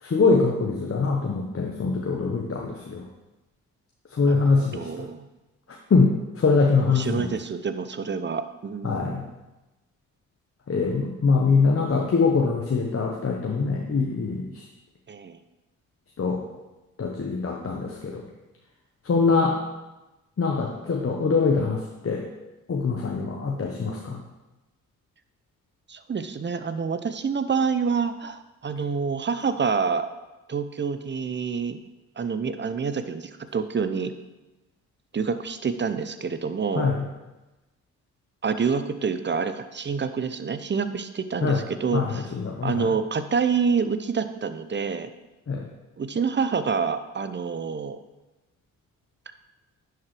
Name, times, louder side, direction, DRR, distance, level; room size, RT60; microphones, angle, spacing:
voice 1, 0.0-3.0 4.1-5.0 5.9-7.3 8.8-9.3 10.7-14.6 16.2-16.4 17.0-18.2 19.0-19.6 20.4-22.2 22.7-24.2 36.7-37.0 41.4-41.6 41.9-42.9 45.5-45.7, left 4 dB, 40° left, -1 dB, 1.1 m, -23 dB
voice 2, 4.2-5.2 6.8-9.3 15.1-15.4 25.9-30.1 30.5-31.8 32.2-34.1 35.1-36.9 38.4-42.3 42.6-45.1 46.0-48.0, right 5 dB, 30° right, 11 dB, 0.6 m, -27 dB
10.5 x 4.6 x 3.3 m, 1.1 s
hypercardioid pair, 45°, 36 cm